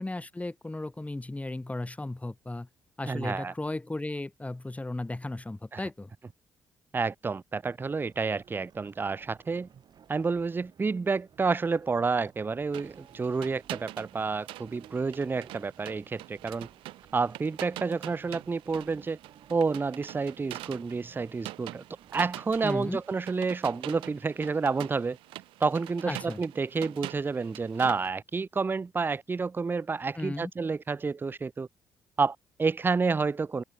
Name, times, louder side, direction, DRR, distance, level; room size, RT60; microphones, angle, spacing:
voice 1, 0.0-2.7 3.0-6.1 22.6-23.0 26.1-26.4 30.1-30.5, left 2 dB, 15° left, 3.1 m, -35 dB
voice 2, 3.1-3.5 5.7-5.8 6.9-9.7 10.1-16.7 17.1-19.2 19.5-21.8 22.1-25.2 25.6-31.7 32.2-33.6, right 4 dB, 20° right, 0.5 m, -29 dB
sound 1, 8.1-22.9, right 8 dB, 50° right, 7.9 m, -57 dB
sound 2, 12.7-28.1, right 18 dB, 65° right, 6.8 m, -45 dB
figure-of-eight pair, 45°, 10 cm